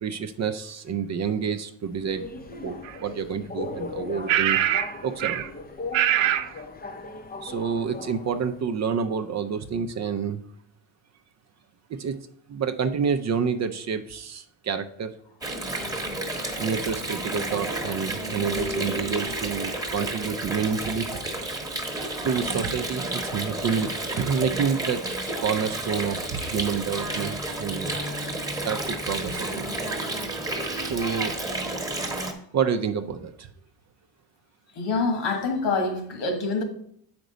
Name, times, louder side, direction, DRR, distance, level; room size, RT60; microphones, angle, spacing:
voice 1, 0.0-2.3 2.6-4.6 5.0-5.5 7.4-10.4 11.9-12.2 12.5-15.1 16.6-21.1 22.2-25.0 25.4-28.0 28.6-29.7 30.8-31.3 32.5-33.5, right 6 dB, 40° right, 0.5 m, -28 dB
Subway metro underground, 1.8-8.6, left 3 dB, 20° left, 0.6 m, -38 dB
sound 1, 2.8-2.9 4.3-4.9 5.2-5.5 5.9-6.5, right 12 dB, 90° right, 0.7 m, -22 dB
Water, 15.4-32.3, right 1 dB, 10° right, 1.0 m, -31 dB
voice 2, 34.7-36.6, left 3 dB, 75° left, 1.9 m, -26 dB
7.9 x 5.2 x 5.0 m
cardioid pair, 160°, 44 cm